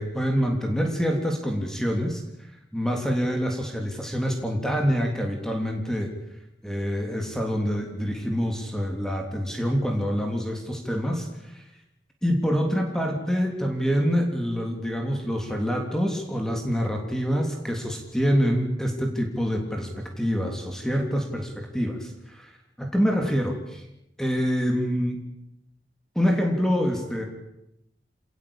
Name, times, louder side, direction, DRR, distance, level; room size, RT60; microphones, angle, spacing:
voice 1, 0.0-2.2 2.7-6.1 6.6-11.6 12.2-22.5 22.8-23.9 24.2-25.2 26.1-27.2, equal, 5° left, 2 dB, 3.2 m, -26 dB
27.0 x 19.0 x 8.9 m, 0.86 s
head